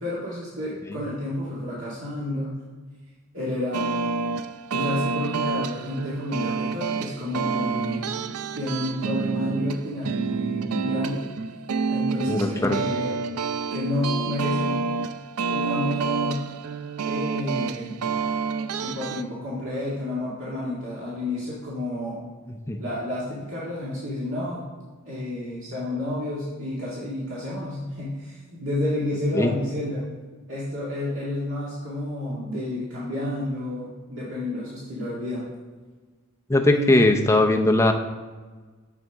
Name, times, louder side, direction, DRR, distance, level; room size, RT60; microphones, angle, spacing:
voice 1, 0.0-2.6 3.3-3.8 4.7-8.1 8.5-11.3 11.9-13.1 13.7-14.8 15.5-16.4 17.0-18.0 18.8-22.2 22.8-24.6 25.0-30.0 30.5-35.4 36.6-37.1, left 1 dB, 60° right, -8 dB, 1.9 m, -30 dB
sound 1, 3.7-19.2, right 4 dB, 85° right, 0.4 m, -28 dB
voice 2, 12.3-12.8 22.7-22.8 29.3-29.5 36.5-37.9, left 2 dB, 10° left, 3 dB, 0.6 m, -19 dB
9.2 x 7.2 x 3.5 m, 1.4 s
head